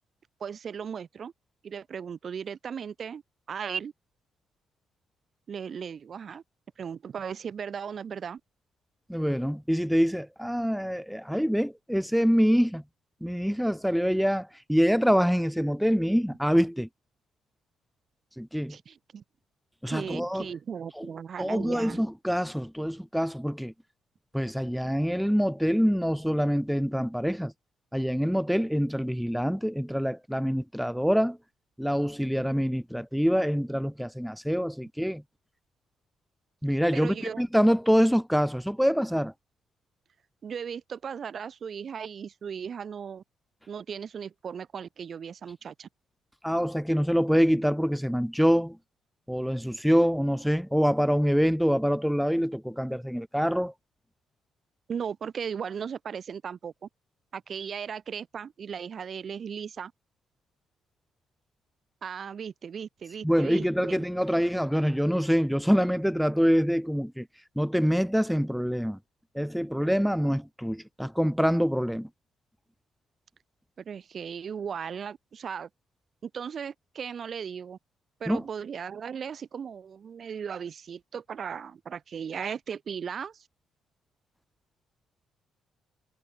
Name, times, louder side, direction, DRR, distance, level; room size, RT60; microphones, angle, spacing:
voice 1, 0.4-1.3 1.6-3.2 3.5-3.9 5.5-6.4 6.8-8.4 18.7-19.2 19.9-22.0 36.9-37.5 40.4-43.2 43.7-45.9 54.9-56.9 57.3-59.9 62.0-64.1 73.8-75.7 76.2-77.8 78.2-83.5, right 7 dB, 50° right, 2.8 m, -37 dB
voice 2, 9.1-12.8 13.2-16.9 18.4-18.8 19.8-20.5 21.0-21.1 21.4-23.7 24.3-27.5 27.9-31.4 31.8-35.2 36.6-39.3 46.4-48.8 49.3-53.7 63.2-67.3 67.6-69.0 69.3-72.1 78.3-78.4, equal, ahead, 0.4 m, -25 dB
cardioid pair, 90°, 0 cm